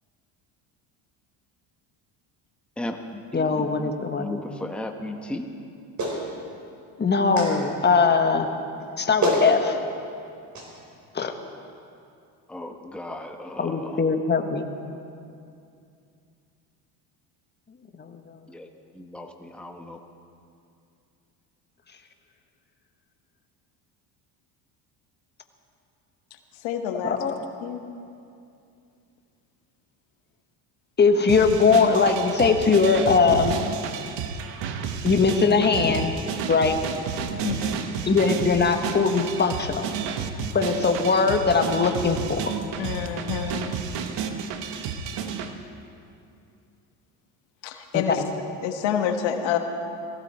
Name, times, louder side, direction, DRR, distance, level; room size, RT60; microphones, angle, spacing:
voice 1, 2.8-5.5 12.5-14.0 18.5-18.7 18.9-20.0, left 1 dB, ahead, 3 dB, 1.2 m, -36 dB
voice 2, 3.3-4.3 7.0-8.5 9.0-9.8 11.1-11.3 13.6-14.7 18.0-18.2 27.0-27.4 31.0-33.5 35.0-36.1 36.5-36.8 38.1-39.8 40.5-42.5 47.9-48.3, left 4 dB, 20° left, 5 dB, 1.4 m, -21 dB
Clapping, 6.0-6.2 7.4-7.5 8.8-8.9 9.2-9.5 10.5-10.7, right 1 dB, 40° right, 4.1 m, -25 dB
voice 3, 26.6-27.2 27.6-27.8 37.4-37.8 42.8-43.7 47.6-48.2 48.6-49.6, left 9 dB, 75° left, 6 dB, 1.4 m, -27 dB
sound 1, 31.3-45.5, right 6 dB, 70° right, 1.3 m, -31 dB
19.5 x 15.5 x 4.3 m, 2.5 s
supercardioid pair, 85°, 46 cm